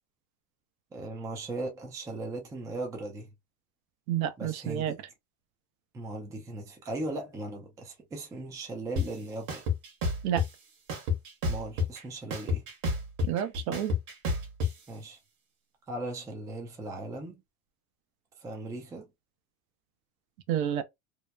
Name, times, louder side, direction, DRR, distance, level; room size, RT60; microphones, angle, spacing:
voice 1, 0.9-3.3 4.4-4.9 5.9-9.6 11.5-12.6 14.9-15.2 15.9-17.4 18.4-19.1, right 2 dB, 10° right, 0.4 m, -38 dB
voice 2, 4.1-5.0 10.2-10.4 13.2-13.9 20.5-20.8, right 10 dB, 70° right, 0.7 m, -29 dB
sound 1, 9.0-9.1 9.5-10.5 10.9-12.0 12.3-14.7, left 3 dB, 50° right, 1.1 m, -28 dB
2.9 x 2.0 x 2.2 m
supercardioid pair, 140°, 44 cm